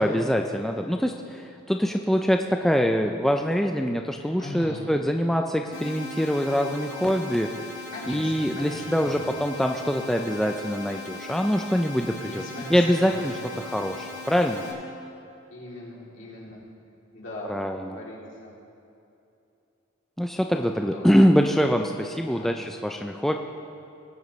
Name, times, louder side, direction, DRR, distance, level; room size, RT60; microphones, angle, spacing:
voice 1, 0.0-7.5 8.1-12.4 12.7-13.3 13.6-14.6 17.5-18.0 20.2-23.4, equal, ahead, 3 dB, 0.3 m, -24 dB
voice 2, 4.4-4.9 7.9-9.3 12.2-13.3 15.5-16.6 17.1-18.5 20.5-20.6 20.9-21.2 22.1-22.6, left 1 dB, 65° left, -5 dB, 2.9 m, -39 dB
sound 1, 5.7-14.7, left 3 dB, 85° left, 2.0 m, -39 dB
19.0 x 9.1 x 3.1 m, 2.7 s
head